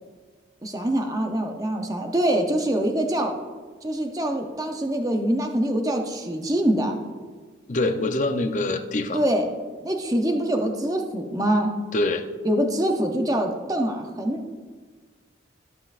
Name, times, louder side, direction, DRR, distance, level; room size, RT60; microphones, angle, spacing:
voice 1, 0.6-3.3 3.8-7.0 9.1-9.5 9.8-11.7 12.4-14.4, right 1 dB, 20° right, 3 dB, 0.6 m, -24 dB
voice 2, 7.7-9.2 11.9-12.2, left 2 dB, 40° left, 7 dB, 0.5 m, -24 dB
14.0 x 5.5 x 2.5 m, 1.5 s
head